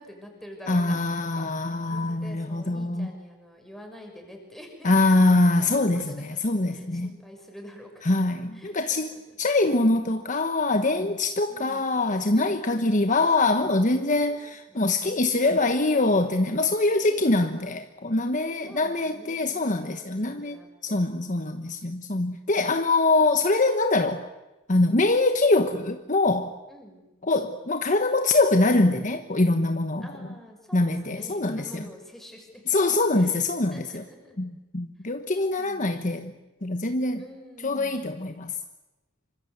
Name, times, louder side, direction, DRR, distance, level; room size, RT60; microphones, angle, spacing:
voice 1, 0.0-1.0 1.3-4.9 5.4-6.4 6.7-8.1 8.5-9.4 11.5-11.8 12.3-13.2 14.3-14.4 14.7-15.0 17.0-17.7 18.6-21.0 26.7-27.0 30.0-32.6 33.1-34.4 35.0-35.1 35.4-36.0 36.3-36.4 37.2-38.1, equal, ahead, 2 dB, 6.1 m, -47 dB
voice 2, 0.7-3.1 4.8-6.2 6.4-7.1 8.1-20.6 20.8-24.2 24.7-26.5 27.2-30.0 30.7-31.6 32.7-34.0 34.4-36.3 36.6-37.2 37.6-38.5, left 2 dB, 40° left, 7 dB, 1.2 m, -23 dB
27.0 x 25.5 x 8.2 m, 1.1 s
head